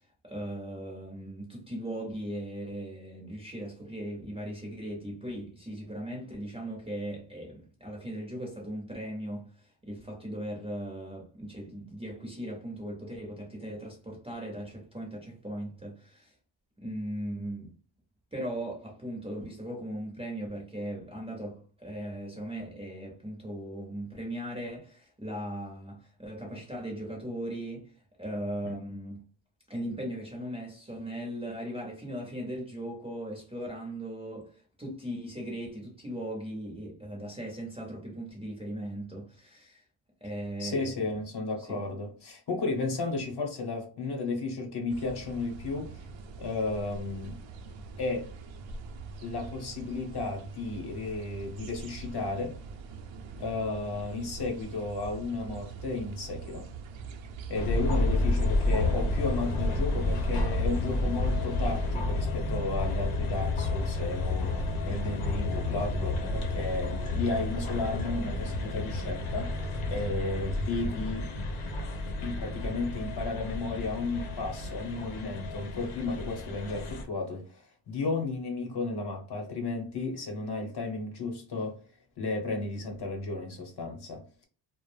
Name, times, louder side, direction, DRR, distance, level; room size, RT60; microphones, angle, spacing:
voice 1, 0.0-16.3 16.8-17.8 18.3-29.2 29.7-39.8 40.2-41.1 41.6-41.8, right 1 dB, 10° right, 0.5 m, -38 dB
voice 2, 40.6-45.9 46.4-47.4 48.0-48.2 49.2-52.5 53.4-56.6 57.5-64.5 64.8-71.3 72.2-81.7 82.2-84.4, left 3 dB, 50° left, 0.8 m, -33 dB
sound 1, 44.9-62.0, right 3 dB, 65° right, 0.6 m, -43 dB
sound 2, 57.5-77.0, left 2 dB, 85° left, 0.8 m, -30 dB
2.3 x 2.0 x 3.1 m
wide cardioid pair, 150°, 50 cm